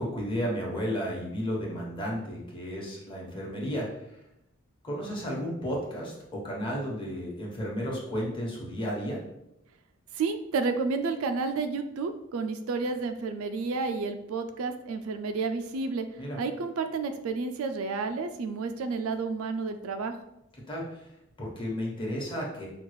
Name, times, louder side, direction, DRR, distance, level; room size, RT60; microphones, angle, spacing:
voice 1, 0.0-3.9 4.8-9.2 16.2-16.4 20.7-21.1 21.4-22.7, equal, 25° left, -3 dB, 1.1 m, -33 dB
voice 2, 10.1-16.1 16.4-20.1, right 4 dB, 70° right, 8 dB, 0.4 m, -31 dB
5.2 x 2.4 x 3.2 m, 0.84 s
head